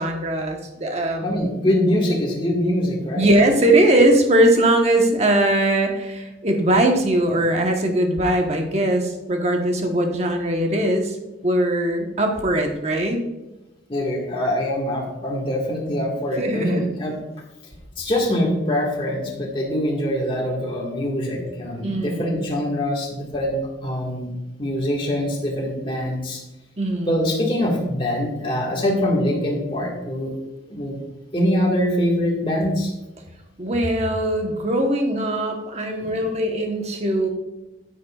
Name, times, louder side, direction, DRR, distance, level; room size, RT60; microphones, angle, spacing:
voice 1, 0.0-1.4 3.2-11.2 11.4-13.2 16.4-16.9 21.8-22.3 26.8-27.1 28.8-29.1 33.6-37.3, right 1 dB, 35° right, 3 dB, 1.2 m, -20 dB
voice 2, 1.2-3.3 13.9-17.2 18.0-24.3 24.6-26.4 27.1-30.3 30.7-31.0 31.3-32.9 36.0-36.2, left 1 dB, 30° left, -2 dB, 1.8 m, -23 dB
9.5 x 9.4 x 2.4 m, 1.0 s
head